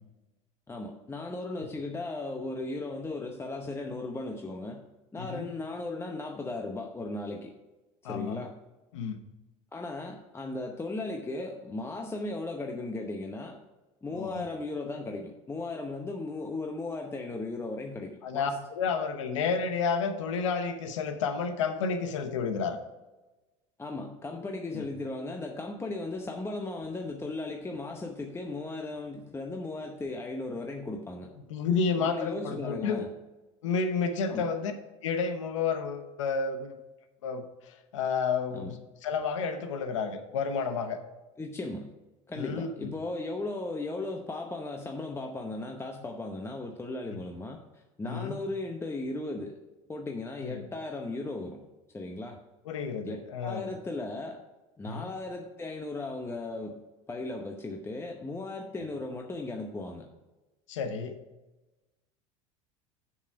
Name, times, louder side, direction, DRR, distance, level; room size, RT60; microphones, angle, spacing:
voice 1, 0.7-4.8 5.1-7.5 8.1-8.5 9.7-13.6 14.0-18.6 23.8-31.3 32.0-33.2 34.3-34.5 38.5-38.7 41.4-41.9 42.3-49.6 49.9-51.6 51.9-52.4 53.1-54.4 54.8-56.8 57.1-60.1, left 2 dB, 15° left, 2 dB, 0.8 m, -36 dB
voice 2, 5.2-5.5 8.0-8.4 8.9-9.2 14.1-14.5 18.2-22.8 24.7-24.9 31.5-33.0 33.6-34.7 35.0-36.8 37.2-41.0 42.3-42.9 47.1-47.2 48.0-48.4 50.4-50.7 52.7-53.6 54.9-55.1 60.7-61.2, left 5 dB, 90° left, 8 dB, 0.9 m, -31 dB
7.1 x 6.7 x 4.7 m, 1.1 s
supercardioid pair, 90°, 16 cm